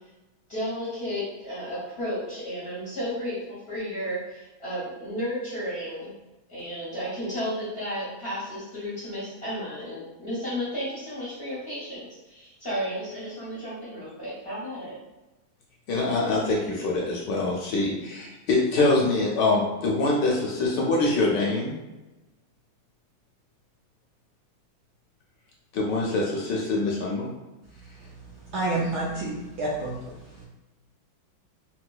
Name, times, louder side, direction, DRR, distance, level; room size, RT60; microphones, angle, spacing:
voice 1, 0.5-6.1 6.5-15.0, equal, 50° left, -8 dB, 0.7 m, -33 dB
voice 2, 15.9-21.7 25.7-27.3, left 2 dB, 75° left, -2 dB, 1.1 m, -24 dB
voice 3, 27.9-30.4, right 2 dB, 70° right, -5 dB, 0.9 m, -30 dB
4.5 x 2.2 x 2.3 m, 1.1 s
omnidirectional pair, 2.2 m